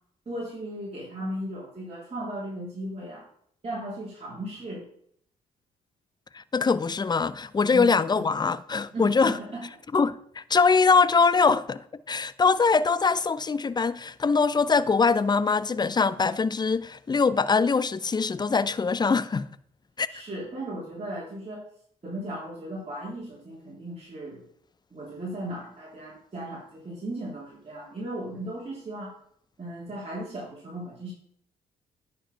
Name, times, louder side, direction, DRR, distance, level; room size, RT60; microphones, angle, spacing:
voice 1, 0.3-3.2 3.6-4.9 7.7-8.2 8.9-9.7 20.1-21.7 22.0-24.5 24.9-29.2 29.6-31.1, right 1 dB, 30° right, 3.5 m, -36 dB
voice 2, 6.3-9.4 9.9-19.5 20.0-20.1, left 4 dB, 20° left, 0.5 m, -23 dB
9.8 x 5.4 x 5.6 m
hypercardioid pair, 45°, 20 cm